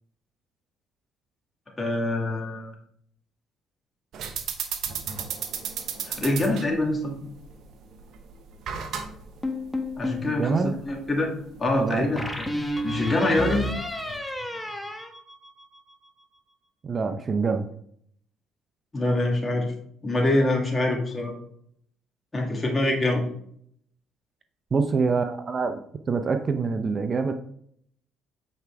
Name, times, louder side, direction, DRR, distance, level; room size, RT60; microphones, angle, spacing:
voice 1, 1.8-2.7 6.2-7.2 10.0-11.3 11.6-12.2 12.8-13.7 18.9-19.7 20.0-21.3 22.3-23.2, left 2 dB, 25° left, 0 dB, 2.3 m, -24 dB
sound 1, 4.1-14.2, right 7 dB, 65° right, 0.9 m, -36 dB
sound 2, 9.4-10.3 12.2-15.9, left 1 dB, 10° left, 1.1 m, -31 dB
voice 2, 10.2-10.7 11.7-12.0 16.8-17.7 24.7-25.8 26.1-27.3, right 5 dB, 40° right, 8 dB, 0.6 m, -25 dB
8.0 x 4.7 x 3.4 m, 0.65 s
supercardioid pair, 70°, 0 cm